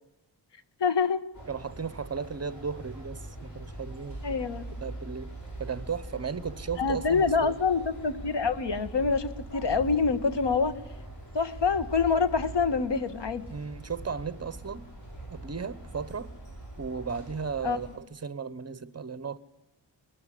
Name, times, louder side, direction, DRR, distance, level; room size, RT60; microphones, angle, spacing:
voice 1, 0.8-1.2 4.2-4.7 6.8-10.7 11.3-13.4 17.6-17.8, left 5 dB, 70° left, 1.5 m, -26 dB
sound 1, 1.3-18.0, right 1 dB, 40° left, 6.3 m, -42 dB
voice 2, 1.5-4.4 4.8-5.3 5.6-7.6 13.5-14.9 15.3-16.3 16.8-19.4, right 5 dB, 35° right, 0.9 m, -35 dB
21.0 x 13.5 x 10.0 m
wide cardioid pair, 165°, 45 cm